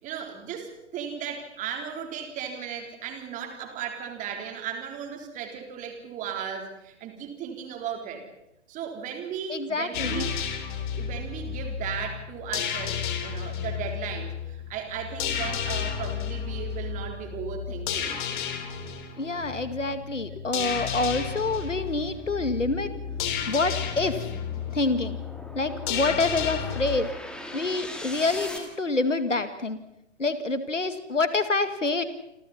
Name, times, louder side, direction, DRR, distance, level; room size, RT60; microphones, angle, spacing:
voice 1, 0.0-8.2 8.7-10.4 11.0-18.2, right 8 dB, 20° right, 4 dB, 3.9 m, -36 dB
voice 2, 9.5-10.2 19.2-22.9 23.5-24.2 24.7-25.2 25.5-27.1 27.5-29.8 30.2-32.0, left 3 dB, 80° left, 11 dB, 2.3 m, -27 dB
sound 1, 9.9-27.0, left 8 dB, 40° left, 3.6 m, -32 dB
sound 2, 18.1-28.6, left 1 dB, ahead, 2.7 m, -44 dB
28.0 x 27.0 x 4.3 m, 0.86 s
figure-of-eight pair, 120°, 37 cm